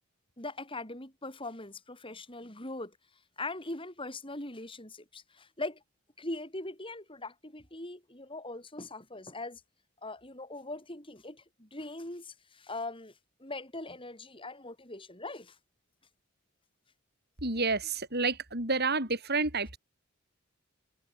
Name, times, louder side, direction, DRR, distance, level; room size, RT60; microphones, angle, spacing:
voice 1, 0.4-3.0 3.4-5.8 6.2-9.6 10.0-13.1 13.4-15.6, left 2 dB, 25° left, 6.6 m, -41 dB
voice 2, 17.4-19.8, right 3 dB, 45° right, 7.8 m, -29 dB
head